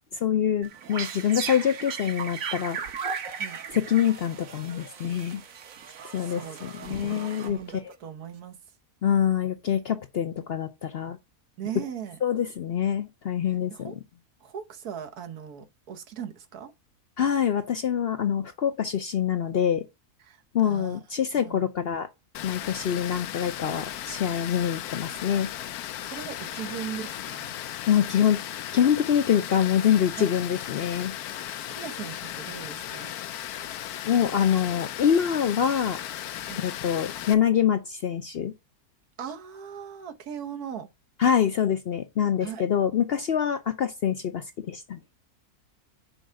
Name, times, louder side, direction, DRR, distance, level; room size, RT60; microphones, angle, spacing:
voice 1, 0.1-2.8 3.7-5.4 6.1-7.6 9.0-11.2 12.2-13.9 17.2-19.8 20.5-22.1 22.4-25.5 27.9-28.4 28.7-31.1 34.1-36.0 36.6-38.5 41.2-45.0, left 9 dB, 60° left, 0.6 m, -25 dB
sound 1, 0.6-7.9, right 6 dB, 65° right, 1.4 m, -37 dB
voice 2, 5.8-8.6 11.6-12.2 13.7-14.0 14.4-16.7 20.2-21.0 21.4-21.6 26.0-27.5 30.1-30.3 31.6-33.1 36.4-36.6 39.2-40.9 42.4-42.6, right 8 dB, 85° right, 1.6 m, -39 dB
Water, 22.3-37.3, left 12 dB, 80° left, 1.1 m, -36 dB
6.3 x 4.5 x 6.2 m
omnidirectional pair, 1.6 m